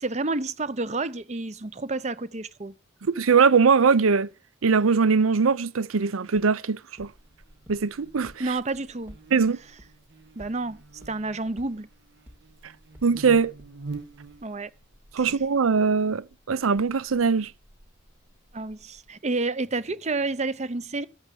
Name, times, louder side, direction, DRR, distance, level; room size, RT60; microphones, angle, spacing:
voice 1, 0.0-2.7 8.4-9.2 10.4-10.8 11.1-11.9 14.4-14.7 15.2-15.4 18.5-21.1, right 3 dB, 35° right, 0.7 m, -30 dB
voice 2, 3.0-4.3 4.6-7.1 7.7-8.3 9.3-9.6 13.0-13.5 15.1-17.5, right 5 dB, 90° right, 0.6 m, -21 dB
sound 1, 6.3-6.4 7.0-7.1 7.7-7.8 8.3-8.4 8.7-9.2 9.8-9.9 10.4-10.5 11.0-11.1 11.6-11.7 12.3-12.4 12.9-13.0 13.6-13.7, equal, 10° right, 2.5 m, -47 dB
Buzz, 7.0-19.1, right 3 dB, 60° right, 1.5 m, -47 dB
13.0 x 8.8 x 7.6 m
head